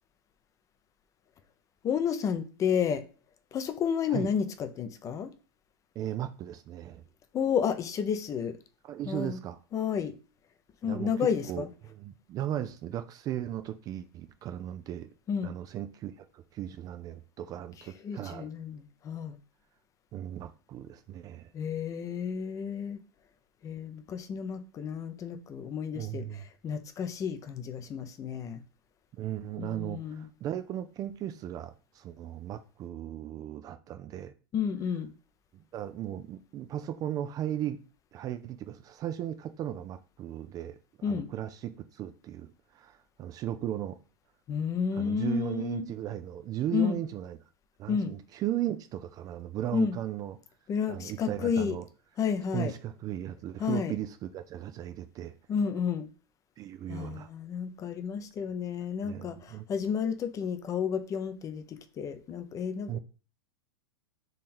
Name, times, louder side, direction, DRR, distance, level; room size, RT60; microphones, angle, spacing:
voice 1, 1.8-3.0 3.5-5.3 7.3-8.6 9.1-9.4 9.7-10.1 10.8-11.7 15.3-15.5 18.0-19.4 21.5-23.0 23.6-26.3 26.6-28.6 29.6-30.3 34.5-35.1 41.0-41.3 44.5-45.9 46.7-47.0 47.9-48.1 49.7-50.0 50.7-51.8 52.2-52.7 53.6-53.9 55.5-56.1 56.9-63.0, left 7 dB, 25° left, 0.6 m, -31 dB
voice 2, 6.0-7.0 8.8-9.6 10.8-15.1 15.4-18.5 20.1-21.5 25.9-26.4 29.1-34.3 35.5-37.8 38.1-40.8 41.0-44.0 44.9-47.4 47.8-50.4 50.9-51.9 52.5-55.3 56.6-57.3 59.0-59.7 62.9-63.0, right 11 dB, 30° right, 0.4 m, -36 dB
3.8 x 3.2 x 4.2 m
hypercardioid pair, 120°, 13 cm